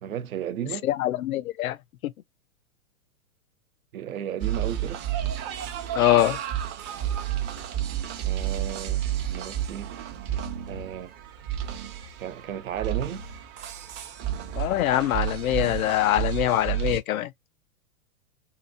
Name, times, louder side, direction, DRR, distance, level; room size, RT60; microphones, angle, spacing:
voice 1, 0.0-0.9 3.9-5.0 8.2-9.0 9.3-9.9 10.7-11.1 12.2-13.3, right 10 dB, 80° right, 0.8 m, -34 dB
voice 2, 0.8-1.8 2.0-2.1 5.9-6.4 14.5-17.3, left 13 dB, 85° left, 0.5 m, -23 dB
sound 1, 4.4-17.0, right 11 dB, 25° right, 0.6 m, -31 dB
2.8 x 2.6 x 2.6 m
hypercardioid pair, 135°, 41 cm